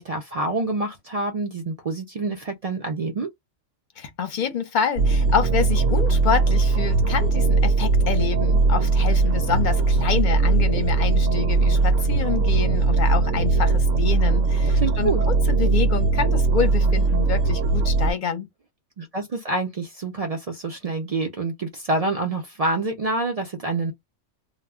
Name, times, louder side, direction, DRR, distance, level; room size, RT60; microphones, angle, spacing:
voice 1, 0.0-3.3 14.7-15.2 19.0-23.9, right 2 dB, 65° right, 0.3 m, -27 dB
voice 2, 4.0-18.5, left 7 dB, 50° left, 0.6 m, -27 dB
sound 1, 5.0-18.1, right 3 dB, 90° right, 0.9 m, -20 dB
2.1 x 2.0 x 3.5 m
omnidirectional pair, 1.2 m